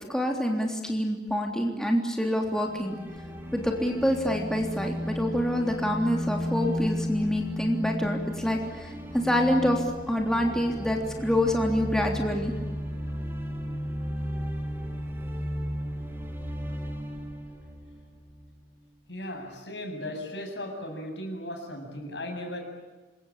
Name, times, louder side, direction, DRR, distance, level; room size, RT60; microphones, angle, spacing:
voice 1, 0.1-3.0 3.5-12.5, equal, 5° left, 1 dB, 3.4 m, -26 dB
sound 1, 2.5-18.6, equal, 15° right, 3.5 m, -34 dB
voice 2, 19.1-22.6, left 1 dB, 75° left, 4 dB, 7.7 m, -36 dB
27.5 x 24.0 x 8.8 m, 1.2 s
head